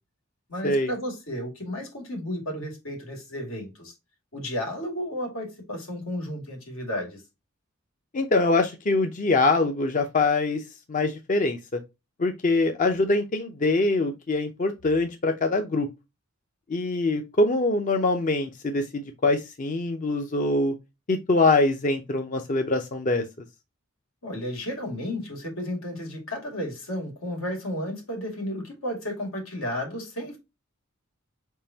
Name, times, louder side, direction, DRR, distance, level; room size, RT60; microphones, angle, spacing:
voice 1, 0.5-3.9 4.3-7.2 24.2-30.4, left 1 dB, 90° left, 2.3 m, -33 dB
voice 2, 8.1-10.6 10.9-11.8 12.2-15.9 16.7-20.7 21.1-23.2, left 2 dB, 40° left, 0.5 m, -24 dB
5.0 x 3.7 x 2.7 m
head